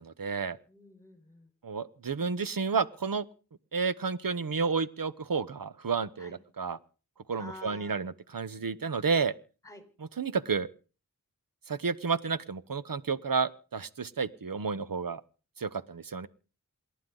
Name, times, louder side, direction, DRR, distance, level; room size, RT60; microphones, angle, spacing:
voice 1, 0.0-0.6 1.6-3.3 3.7-6.8 7.3-9.3 10.2-10.7 11.7-15.2 15.6-16.3, right 5 dB, 65° right, 16 dB, 1.0 m, -31 dB
voice 2, 0.7-1.5 6.2-6.4 7.4-8.0 9.6-9.8, left 1 dB, 10° left, 7 dB, 4.2 m, -49 dB
28.0 x 11.5 x 3.9 m, 0.39 s
wide cardioid pair, 40°, 36 cm